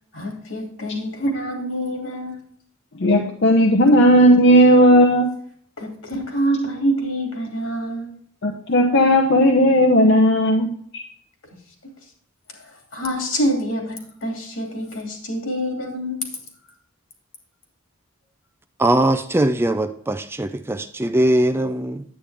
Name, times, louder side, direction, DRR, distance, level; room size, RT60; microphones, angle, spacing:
voice 1, 0.1-2.4 5.8-8.1 12.6-16.3, right 1 dB, 75° left, 1 dB, 2.7 m, -26 dB
voice 2, 3.0-5.3 8.4-10.7, equal, 60° left, 1 dB, 0.8 m, -14 dB
voice 3, 18.8-22.0, right 1 dB, 10° right, 10 dB, 0.3 m, -20 dB
9.9 x 8.8 x 3.4 m, 0.63 s
head